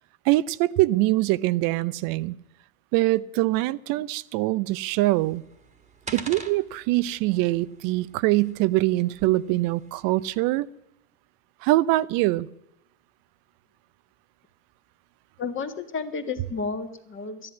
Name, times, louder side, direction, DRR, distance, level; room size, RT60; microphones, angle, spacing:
voice 1, 0.2-2.4 2.9-5.4 6.1-10.7 11.6-12.5, right 18 dB, 50° right, 18 dB, 0.7 m, -23 dB
sound 1, 4.9-10.4, right 3 dB, 15° right, 1.7 m, -45 dB
voice 2, 15.4-17.5, left 4 dB, 30° left, 7 dB, 1.7 m, -32 dB
12.5 x 11.0 x 9.4 m, 0.81 s
hypercardioid pair, 95°, 43 cm